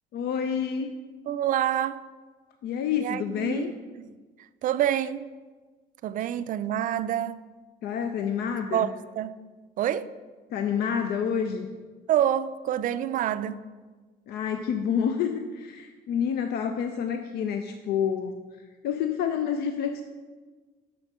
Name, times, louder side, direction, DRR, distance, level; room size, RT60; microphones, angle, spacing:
voice 1, 0.1-0.9 2.6-3.7 7.8-8.9 10.5-11.7 14.3-18.4 18.8-20.0, left 7 dB, 70° left, 0.5 m, -28 dB
voice 2, 1.3-2.0 3.0-3.7 4.0-4.1 4.4-5.3 6.0-7.4 8.7-9.4 9.8-10.1 12.1-13.6, right 11 dB, 50° right, 0.4 m, -27 dB
6.2 x 5.0 x 6.6 m
cardioid pair, 110°, 17 cm